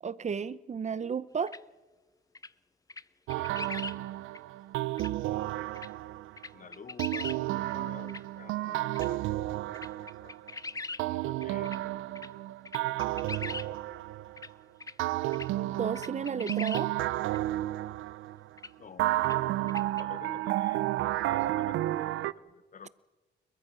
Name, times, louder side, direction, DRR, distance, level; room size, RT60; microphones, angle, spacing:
voice 1, 0.0-1.5 15.8-16.9, right 6 dB, 35° right, 0.8 m, -33 dB
sound 1, 1.5-1.6 2.3-2.5 2.9-3.0 3.3-4.0 4.3-4.4 5.0-5.1 5.8-5.9 6.4-7.4 7.7-7.8 8.1-8.2 8.9-9.1 9.7-11.0 11.4-11.8 12.2-12.3 12.7-13.7 14.4-14.5 14.8-14.9 15.3-15.5 15.9-16.8 17.3-17.4 18.6-18.7 19.2-19.4 19.7-20.0, left 3 dB, 15° left, 0.6 m, -40 dB
sound 2, 3.3-6.4 7.0-10.5 11.0-14.5 15.0-18.5 19.0-22.3, right 16 dB, 90° right, 0.6 m, -32 dB
voice 2, 6.5-9.5 9.8-10.3 11.1-12.0 18.8-19.2 20.0-20.9 21.2-22.9, left 6 dB, 40° left, 1.1 m, -50 dB
30.0 x 14.0 x 6.2 m
cardioid pair, 90°, 20 cm